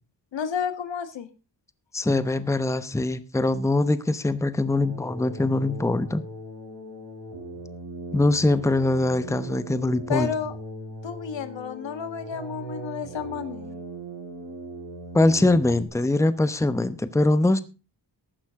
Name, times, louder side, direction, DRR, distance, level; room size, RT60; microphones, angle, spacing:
voice 1, 0.3-1.3 10.1-10.6 11.0-13.8, left 7 dB, 85° left, 11 dB, 1.7 m, -31 dB
voice 2, 1.9-6.2 8.1-10.3 15.1-17.6, left 2 dB, 5° left, 13 dB, 0.8 m, -22 dB
sound 1, 4.6-15.9, right 1 dB, 65° right, 5.5 m, -39 dB
15.0 x 11.5 x 3.6 m, 0.32 s
wide cardioid pair, 125°, 43 cm